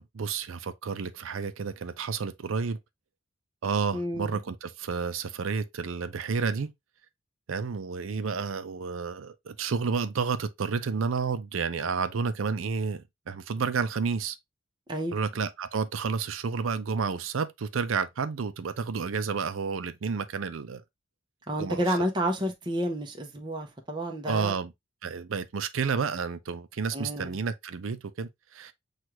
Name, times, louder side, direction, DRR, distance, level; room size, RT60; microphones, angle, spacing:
voice 1, 0.0-2.8 3.6-6.7 7.5-14.4 15.1-20.8 21.6-21.8 24.2-24.7 25.0-28.7, right 5 dB, 80° right, 0.5 m, -30 dB
voice 2, 3.9-4.4 14.9-15.2 21.5-24.5 26.9-27.4, equal, 20° right, 0.7 m, -30 dB
6.1 x 2.4 x 2.9 m
head